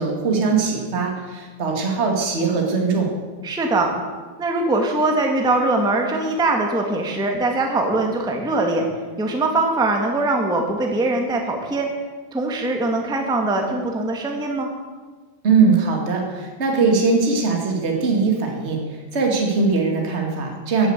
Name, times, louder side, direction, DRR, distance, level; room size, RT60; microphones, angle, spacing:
voice 1, 0.0-3.1 15.4-18.8 19.1-20.9, right 4 dB, 20° right, 1 dB, 2.0 m, -20 dB
voice 2, 3.4-3.9 4.4-8.9 9.2-11.9 12.3-14.7 20.8-20.9, right 2 dB, 5° right, 2 dB, 0.7 m, -22 dB
14.5 x 9.5 x 8.1 m, 1.4 s
omnidirectional pair, 4.1 m